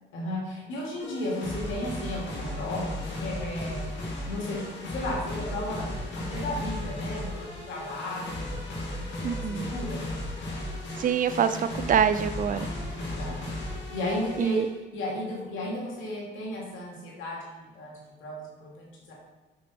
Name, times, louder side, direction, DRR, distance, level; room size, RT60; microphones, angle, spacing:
voice 1, 0.1-3.8 4.2-10.0 12.5-12.6 13.1-13.4 13.9-14.7 14.9-19.1, left 1 dB, 85° left, -4 dB, 2.7 m, -34 dB
sound 1, 1.0-14.7, left 1 dB, 65° left, 2.4 m, -35 dB
voice 2, 9.2-9.7 11.0-12.7 14.4-14.7, right 8 dB, 45° right, 11 dB, 0.5 m, -25 dB
8.4 x 5.4 x 4.3 m, 1.2 s
cardioid pair, 90°, 20 cm